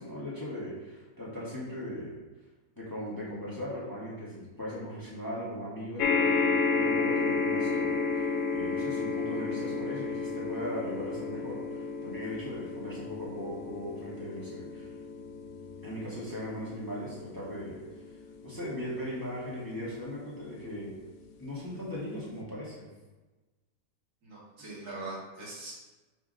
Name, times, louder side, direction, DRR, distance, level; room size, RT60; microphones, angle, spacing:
voice 1, 0.0-2.2 2.8-14.9 15.8-17.8 18.4-20.9 21.4-22.9, equal, 15° left, -7 dB, 1.6 m, -38 dB
sound 1, 6.0-20.5 21.3-21.4 21.7-21.8, left 4 dB, 70° left, 0.8 m, -32 dB
voice 2, 24.2-25.7, right 2 dB, 80° right, -6 dB, 2.4 m, -41 dB
5.9 x 3.6 x 5.2 m, 1.2 s
omnidirectional pair, 1.6 m